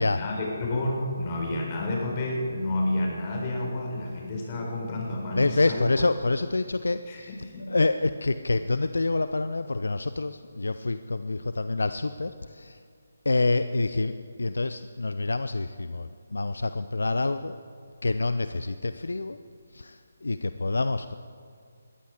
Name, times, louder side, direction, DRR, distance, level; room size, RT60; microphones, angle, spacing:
voice 1, 0.0-5.9 7.1-7.7, left 1 dB, 30° left, -1 dB, 4.3 m, -30 dB
voice 2, 5.4-7.4 7.7-12.8 13.3-17.5 18.0-19.4 19.7-21.1, left 3 dB, 70° left, 11 dB, 0.5 m, -27 dB
20.0 x 14.0 x 4.8 m, 2.2 s
figure-of-eight pair, 145°, 0 cm